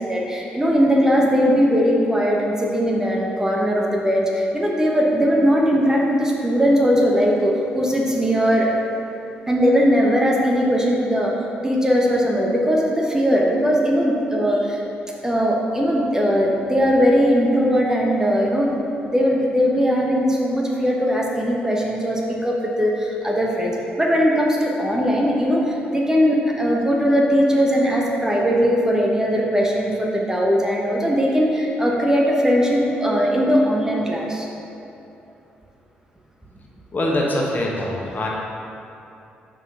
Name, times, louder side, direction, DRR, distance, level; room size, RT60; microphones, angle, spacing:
voice 1, 0.0-8.7 9.5-11.3 11.6-14.8 15.2-18.7 19.0-34.5, equal, 10° right, -2 dB, 1.2 m, -19 dB
voice 2, 36.9-38.3, left 1 dB, 40° left, -3 dB, 1.4 m, -23 dB
5.7 x 4.7 x 5.8 m, 2.8 s
hypercardioid pair, 45°, 5 cm